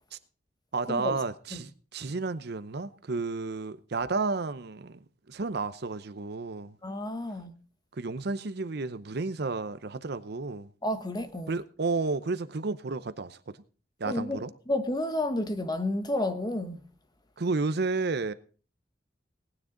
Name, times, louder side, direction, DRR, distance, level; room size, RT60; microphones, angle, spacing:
voice 1, 0.7-5.0 5.3-6.7 8.0-10.7 11.5-13.6 14.0-14.5 17.4-18.3, right 3 dB, 60° right, 0.7 m, -32 dB
voice 2, 6.8-7.5 10.8-11.5 14.1-14.4 14.7-16.8, left 1 dB, 25° left, 1.1 m, -30 dB
18.0 x 9.8 x 3.9 m
head